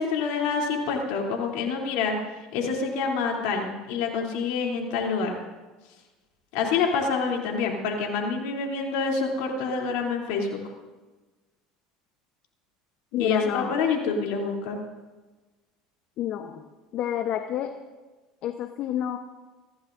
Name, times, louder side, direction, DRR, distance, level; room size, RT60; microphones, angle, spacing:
voice 1, 0.0-2.2 2.5-5.4 6.5-10.6 13.1-14.8, left 5 dB, 70° left, 0 dB, 3.2 m, -27 dB
voice 2, 13.1-13.8 16.2-16.6 16.9-17.7 18.4-19.2, left 10 dB, 55° left, 7 dB, 0.9 m, -29 dB
23.5 x 15.5 x 2.7 m, 1.2 s
hypercardioid pair, 75°, 2 cm